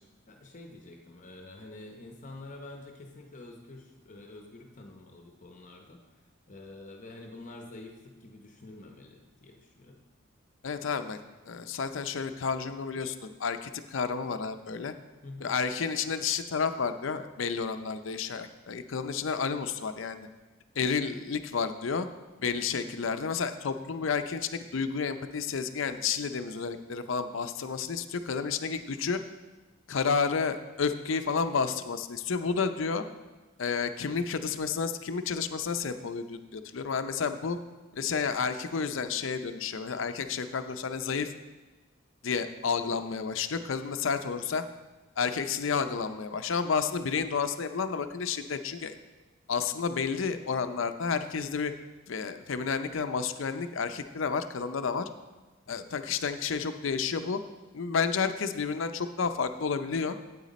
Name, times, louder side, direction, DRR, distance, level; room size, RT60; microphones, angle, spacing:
voice 1, 0.3-10.0 15.2-15.6 55.7-55.9, left 2 dB, 40° left, 2 dB, 0.8 m, -48 dB
voice 2, 10.6-11.2 11.5-14.9 15.4-20.3 20.8-22.1 22.4-29.2 29.9-33.0 33.6-37.6 37.9-41.3 42.2-44.6 45.2-48.9 49.5-51.7 52.1-55.1 55.7-57.4 57.7-60.2, left 5 dB, 65° left, 9 dB, 0.5 m, -31 dB
9.0 x 8.4 x 4.2 m, 1.2 s
head